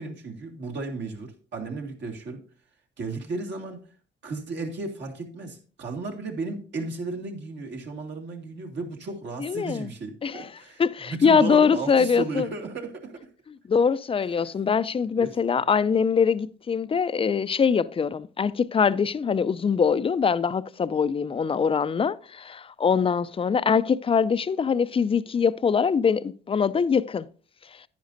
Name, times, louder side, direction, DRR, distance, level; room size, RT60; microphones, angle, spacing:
voice 1, 0.0-2.4 3.0-3.9 4.2-13.3 14.4-14.5 15.2-15.4, right 3 dB, 65° right, 2.2 m, -34 dB
voice 2, 9.4-9.9 10.2-10.5 10.8-12.5 13.7-27.3, left 6 dB, 30° left, 0.5 m, -23 dB
10.5 x 9.9 x 2.6 m
cardioid pair, 90°, 20 cm